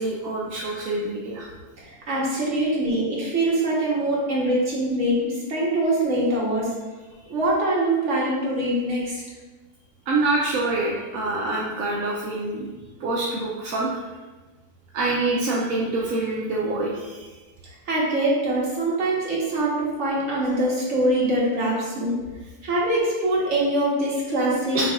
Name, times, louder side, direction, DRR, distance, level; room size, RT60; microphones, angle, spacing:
voice 1, 0.0-1.5 7.1-7.2 10.1-12.7 13.0-13.9 14.9-17.3 24.7-24.8, right 2 dB, 65° right, -4 dB, 0.9 m, -26 dB
voice 2, 1.8-6.7 7.3-9.2 17.8-22.1 22.6-24.8, right 1 dB, 50° right, -5 dB, 1.5 m, -23 dB
5.9 x 3.4 x 2.4 m, 1.3 s
omnidirectional pair, 1.8 m